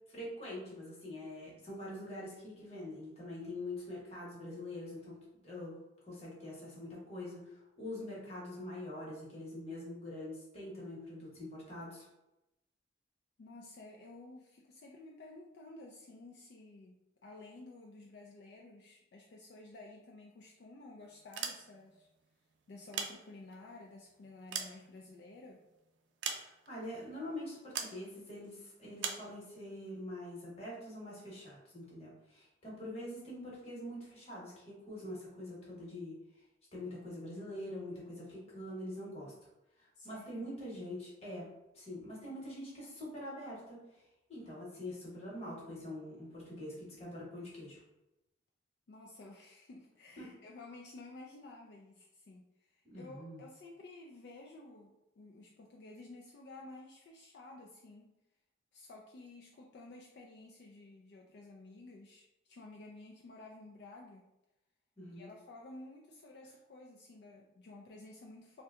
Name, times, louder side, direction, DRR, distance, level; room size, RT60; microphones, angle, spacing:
voice 1, 0.1-5.8 6.1-12.1 26.3-36.1 36.7-39.3 39.8-43.8 44.3-47.8 50.2-50.3 52.8-53.4 65.0-65.3, left 1 dB, 35° left, -5 dB, 1.0 m, -44 dB
voice 2, 13.4-22.1 22.7-25.6 40.0-40.5 48.9-58.1 58.7-64.3 65.1-68.6, left 2 dB, 65° left, -1 dB, 0.3 m, -53 dB
sound 1, 21.2-22.0 22.7-23.7 24.2-25.4 26.2-26.9 27.7-28.0 29.0-29.3, right 6 dB, 85° right, 0.4 m, -40 dB
2.7 x 2.2 x 3.4 m, 0.92 s
head